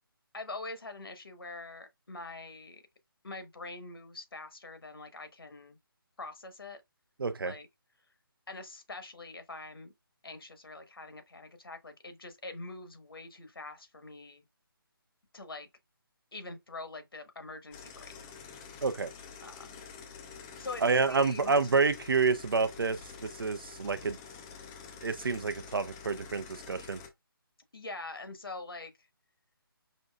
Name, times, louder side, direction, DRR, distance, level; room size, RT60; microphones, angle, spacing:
voice 1, 0.3-2.8 3.2-5.8 6.2-6.8 7.4-7.7 8.5-9.9 10.2-14.4 15.3-15.7 16.3-18.1 18.7-18.8 19.4-19.8 20.6-21.6 27.7-28.9, left 3 dB, 75° left, 1.2 m, -44 dB
voice 2, 7.2-7.5 18.8-19.1 20.8-24.2 25.0-27.0, right 4 dB, 70° right, 0.6 m, -28 dB
sound 1, 17.7-27.1, left 6 dB, 10° left, 0.3 m, -48 dB
5.3 x 2.6 x 2.3 m
figure-of-eight pair, 150°, 12 cm